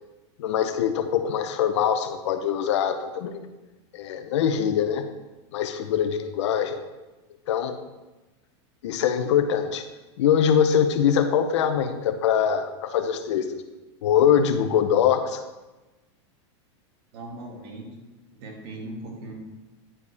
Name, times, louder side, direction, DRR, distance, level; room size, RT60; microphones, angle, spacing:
voice 1, 0.4-3.4 3.9-5.1 5.5-6.8 7.5-7.8 8.8-9.9 10.2-13.6 14.0-15.4, left 8 dB, 75° left, 8 dB, 0.8 m, -23 dB
voice 2, 17.1-18.0 18.3-19.3, right 2 dB, 55° right, -2 dB, 2.3 m, -39 dB
9.9 x 4.7 x 3.5 m, 1.1 s
supercardioid pair, 135°, 15 cm